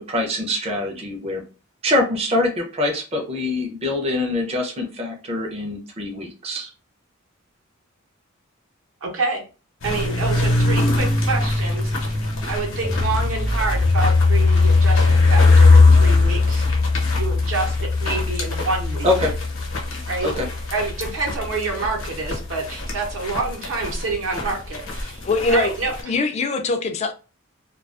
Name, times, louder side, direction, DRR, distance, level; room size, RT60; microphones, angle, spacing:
voice 1, 0.0-1.4 1.8-6.7 19.0-19.3 20.2-20.5, left 2 dB, 30° right, 0.5 m, -24 dB
voice 2, 9.0-9.4 9.8-12.2 12.5-16.6 17.2-19.1 20.1-20.3 20.7-25.2 25.5-25.9, right 3 dB, 70° right, 0.8 m, -27 dB
sound 1, 9.8-26.0, left 3 dB, 70° left, 0.8 m, -19 dB
voice 3, 25.3-25.7 26.0-27.1, left 3 dB, 30° left, 0.3 m, -22 dB
2.3 x 2.3 x 2.4 m
head